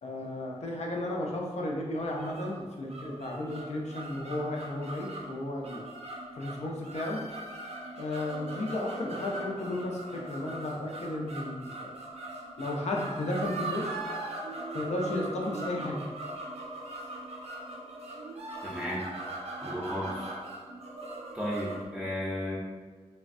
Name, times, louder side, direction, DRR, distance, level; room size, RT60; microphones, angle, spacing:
voice 1, 0.0-5.8 6.4-7.2 8.0-11.9 12.6-14.0 14.7-16.0, left 1 dB, 85° left, -1 dB, 0.5 m, -34 dB
sound 1, 2.0-21.9, right 2 dB, 75° right, 0.4 m, -40 dB
voice 2, 18.6-19.0 19.6-20.3 21.3-22.6, equal, 10° right, -7 dB, 0.5 m, -34 dB
3.3 x 2.1 x 2.5 m, 1.5 s
wide cardioid pair, 105°, 11 cm